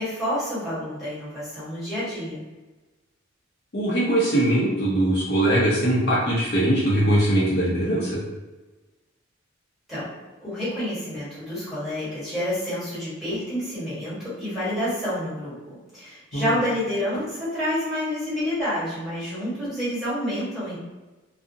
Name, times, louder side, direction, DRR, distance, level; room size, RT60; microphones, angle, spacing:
voice 1, 0.0-2.4 9.9-10.1 10.4-20.8, equal, ahead, -13 dB, 1.2 m, -28 dB
voice 2, 3.7-8.2 16.3-16.5, right 1 dB, 55° left, -7 dB, 0.6 m, -21 dB
2.4 x 2.0 x 2.6 m, 1.2 s
head